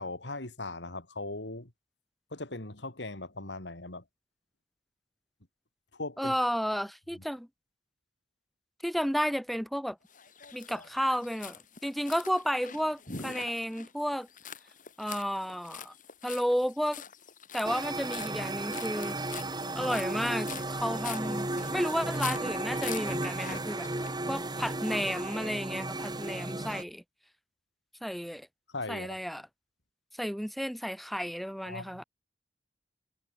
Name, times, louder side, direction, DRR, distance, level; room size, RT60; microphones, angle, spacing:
voice 1, 0.0-1.7 2.3-4.0 5.9-6.3 28.7-29.2 31.6-32.0, left 2 dB, 75° left, 3.3 m, -39 dB
voice 2, 6.2-7.5 8.8-10.0 10.5-14.3 15.0-15.9 16.2-17.0 17.5-19.2 19.7-23.9 24.3-27.0 28.0-28.5 28.9-29.5 30.2-32.0, equal, ahead, 2.7 m, -32 dB
sound 1, 10.1-24.9, left 7 dB, 45° left, 6.9 m, -45 dB
sound 2, 17.6-26.8, right 2 dB, 25° right, 2.5 m, -34 dB
head